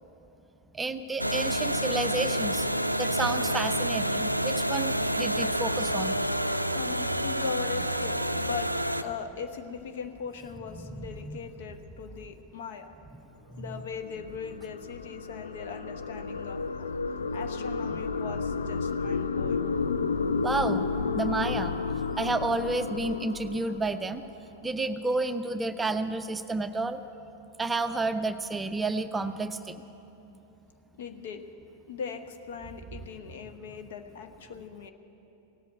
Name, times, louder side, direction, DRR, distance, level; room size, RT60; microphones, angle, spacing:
voice 1, 0.7-2.7 3.0-6.2 10.8-11.4 13.5-13.7 20.0-20.1 20.4-21.8 22.2-24.2 24.6-27.0 27.6-29.8, right 3 dB, 15° right, 9 dB, 0.5 m, -31 dB
sound 1, 1.2-9.0, equal, 90° right, 0.4 m, -28 dB
voice 2, 6.7-12.9 13.6-16.9 17.3-19.7 31.0-31.5 31.9-34.9, left 6 dB, 55° left, 7 dB, 0.9 m, -39 dB
sound 2, 13.8-24.4, left 4 dB, 75° left, 0.4 m, -31 dB
17.5 x 8.2 x 8.8 m, 2.9 s
figure-of-eight pair, 90°, 0 cm